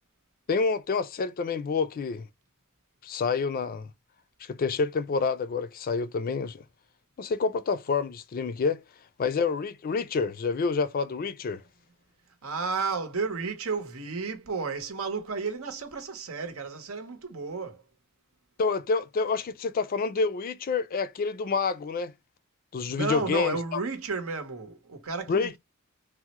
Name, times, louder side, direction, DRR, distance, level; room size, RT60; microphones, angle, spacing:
voice 1, 0.5-2.3 3.0-3.9 4.4-6.6 7.2-8.8 9.2-11.6 18.6-22.1 22.7-23.8 25.3-25.6, left 4 dB, 45° left, 0.3 m, -28 dB
voice 2, 12.4-17.8 22.9-25.6, right 4 dB, 90° right, 0.8 m, -32 dB
3.5 x 2.1 x 2.8 m
head